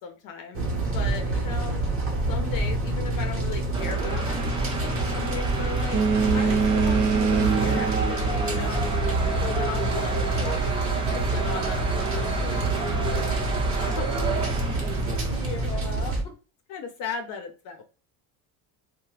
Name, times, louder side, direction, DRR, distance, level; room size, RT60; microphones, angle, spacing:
voice 1, 0.0-1.8 2.3-6.0 6.3-8.8 9.4-10.6 10.9-13.4 13.8-14.1 15.0-15.2 16.7-17.8, left 6 dB, 55° left, 4 dB, 0.7 m, -37 dB
sound 1, 0.5-16.2, right 2 dB, 35° right, 1.0 m, -27 dB
sound 2, 3.7-16.0, right 3 dB, 15° right, 0.3 m, -31 dB
Boat Water vehicle, 5.9-9.1, right 5 dB, 50° right, 0.7 m, -25 dB
voice 2, 10.3-10.7 15.3-16.3, left 2 dB, 10° left, -2 dB, 0.8 m, -38 dB
2.8 x 2.2 x 3.0 m, 0.35 s
cardioid pair, 150°, 39 cm